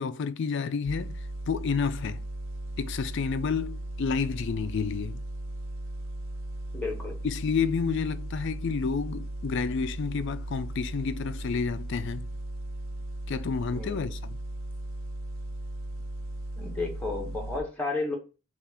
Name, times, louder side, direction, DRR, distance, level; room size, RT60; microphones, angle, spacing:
voice 1, 0.0-2.2 2.8-5.2 7.2-12.3 13.3-14.4, left 5 dB, 55° left, 0.3 m, -30 dB
sound 1, 0.9-17.6, right 1 dB, 60° right, 1.0 m, -37 dB
voice 2, 6.7-7.2 13.7-14.1 16.6-18.2, left 3 dB, 5° left, 1.1 m, -32 dB
5.6 x 2.5 x 3.5 m
head